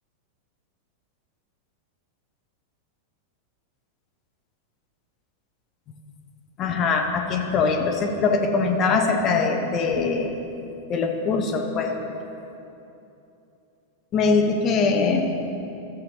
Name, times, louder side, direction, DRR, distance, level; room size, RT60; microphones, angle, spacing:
voice 1, 6.6-10.3 10.9-11.9 14.1-15.3, left 4 dB, 30° left, 3 dB, 0.9 m, -22 dB
13.5 x 7.4 x 3.0 m, 2.9 s
figure-of-eight pair, 90°, 0 cm